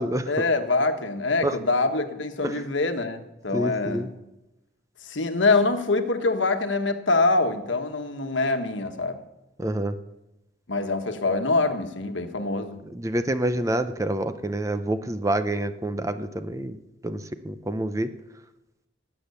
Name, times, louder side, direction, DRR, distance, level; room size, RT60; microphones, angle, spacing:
voice 1, 0.3-4.1 5.0-9.2 10.7-12.8, left 3 dB, 85° left, 7 dB, 1.4 m, -24 dB
voice 2, 3.5-4.0 9.6-9.9 13.0-16.8 17.0-17.2 17.4-18.1, right 1 dB, 15° right, 10 dB, 0.7 m, -27 dB
18.5 x 7.8 x 7.0 m, 0.96 s
head